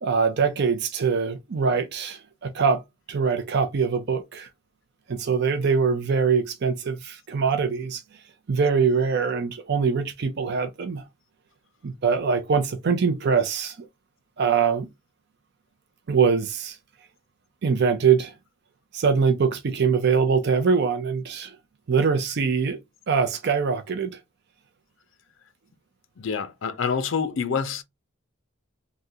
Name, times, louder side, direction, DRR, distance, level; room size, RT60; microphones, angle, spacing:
voice 1, 0.0-2.8 3.1-4.5 5.1-8.0 8.5-11.0 11.8-13.8 14.4-14.9 16.1-16.8 17.6-18.3 18.9-21.6 21.9-22.8 23.1-24.2, right 5 dB, 50° right, 0.5 m, -23 dB
voice 2, 26.2-27.8, left 6 dB, 65° left, 0.5 m, -27 dB
3.6 x 2.1 x 2.7 m
head